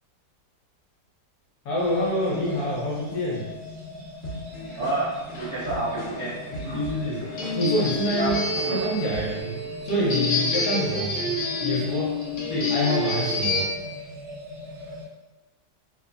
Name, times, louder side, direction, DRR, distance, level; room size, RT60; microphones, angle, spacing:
voice 1, 1.6-3.4 6.7-7.3 7.5-8.4 8.7-9.5 9.8-11.3 11.6-12.1 12.5-13.7, equal, 65° left, -6 dB, 1.2 m, -26 dB
sound 1, 1.8-15.1, left 1 dB, 85° right, 1.4 m, -39 dB
sound 2, 4.2-9.4, equal, 45° left, 1.4 m, -39 dB
voice 2, 4.7-6.4 6.6-6.8 8.2-8.4 8.6-8.8, right 2 dB, 65° right, -10 dB, 0.7 m, -29 dB
sound 3, 5.3-13.6, left 2 dB, 90° left, 0.6 m, -28 dB
3.3 x 2.1 x 2.5 m, 1.1 s
omnidirectional pair, 2.0 m